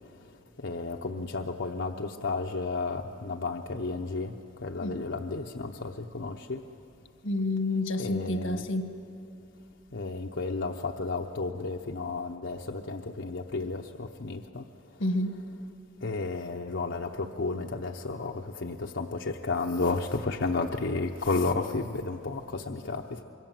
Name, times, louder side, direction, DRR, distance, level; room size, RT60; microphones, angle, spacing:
voice 1, 0.6-6.6 8.0-8.6 9.9-14.6 16.0-23.2, left 3 dB, 65° left, 2 dB, 0.9 m, -32 dB
voice 2, 7.2-9.0 15.0-15.5, left 2 dB, 85° left, 9 dB, 1.4 m, -29 dB
26.5 x 23.5 x 7.6 m, 2.8 s
head